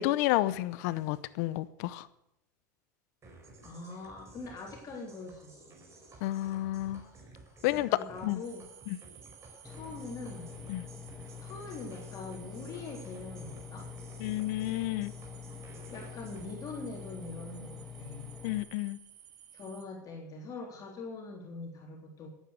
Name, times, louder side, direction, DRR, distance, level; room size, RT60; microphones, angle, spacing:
voice 1, 0.0-2.1 6.2-7.0 7.6-7.9 8.2-8.4 8.9-9.0 10.7-10.8 14.2-15.1 18.4-19.0, left 16 dB, 65° left, 0.7 m, -31 dB
sound 1, 3.2-16.5, right 2 dB, 30° right, 4.7 m, -54 dB
voice 2, 3.6-5.6 7.7-8.7 9.6-10.5 11.4-13.9 15.9-18.3 19.5-22.3, left 3 dB, 40° left, 3.6 m, -43 dB
sound 2, 8.4-19.8, right 9 dB, 85° right, 1.8 m, -55 dB
Engine, 9.6-18.6, left 7 dB, 5° left, 2.0 m, -46 dB
14.5 x 9.2 x 6.4 m
hypercardioid pair, 95°, 10 cm